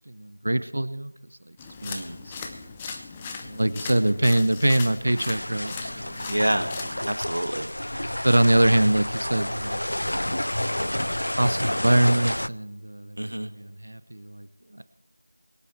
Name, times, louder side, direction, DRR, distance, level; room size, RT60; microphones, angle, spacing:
voice 1, 0.1-1.1 1.8-1.9 2.3-2.4 3.4-6.3 8.2-9.8 10.1-10.2 11.4-14.5 14.8-14.9, right 1 dB, 45° right, 14 dB, 0.7 m, -23 dB
sound 1, 1.6-7.2, left 4 dB, 5° left, 0.5 m, -38 dB
voice 2, 1.8-2.1 6.3-6.7 7.1-7.7 13.2-13.5, right 1 dB, 70° right, 8 dB, 1.6 m, -27 dB
sound 2, 5.1-12.5, left 1 dB, 70° left, 0.4 m, -29 dB
22.5 x 9.0 x 4.4 m, 0.98 s
figure-of-eight pair, 175°, 0 cm